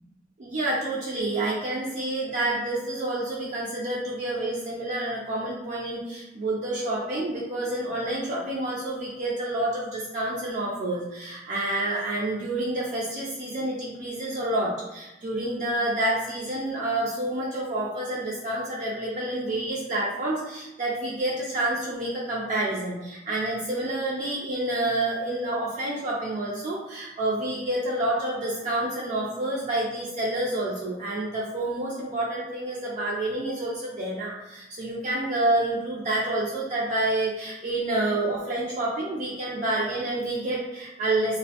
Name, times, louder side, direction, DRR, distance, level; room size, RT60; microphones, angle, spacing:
voice 1, 0.4-41.4, right 1 dB, 45° right, -5 dB, 0.4 m, -28 dB
2.4 x 2.0 x 2.7 m, 0.96 s
head